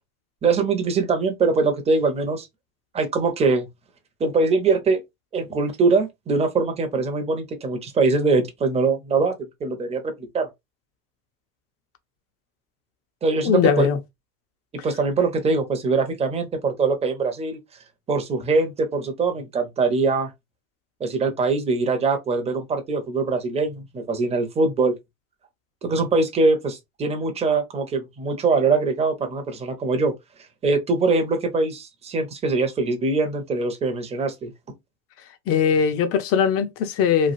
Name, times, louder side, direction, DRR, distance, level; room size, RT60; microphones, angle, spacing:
voice 1, 0.4-2.5 2.9-3.7 4.2-5.0 5.3-9.3 9.6-10.5 13.2-13.9 14.8-17.6 18.1-20.3 21.0-25.0 25.8-30.1 30.6-34.5, right 3 dB, 15° right, 0.6 m, -22 dB
voice 2, 13.4-14.0 35.5-37.3, left 7 dB, 30° left, 0.6 m, -20 dB
3.2 x 2.3 x 2.6 m
hypercardioid pair, 100°, 46 cm